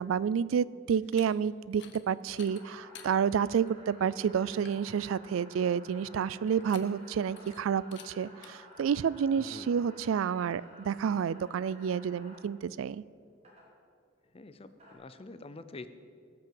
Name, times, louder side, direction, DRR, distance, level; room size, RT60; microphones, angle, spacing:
voice 1, 0.0-13.0, right 7 dB, 85° right, 20 dB, 0.3 m, -30 dB
sound 1, 1.0-1.3 1.7-2.0 2.3-3.1 3.7-3.8 4.1-4.2 4.5-4.8 6.5-7.1 7.4-7.6 7.9-8.1 8.4-8.5, left 8 dB, 60° left, 0.9 m, -51 dB
sound 2, 2.4-12.4 13.4-13.6 14.5-14.9, left 1 dB, 35° right, 3.3 m, -54 dB
voice 2, 14.3-15.9, left 2 dB, 30° left, 11 dB, 0.5 m, -46 dB
18.0 x 6.1 x 7.6 m, 2.3 s
head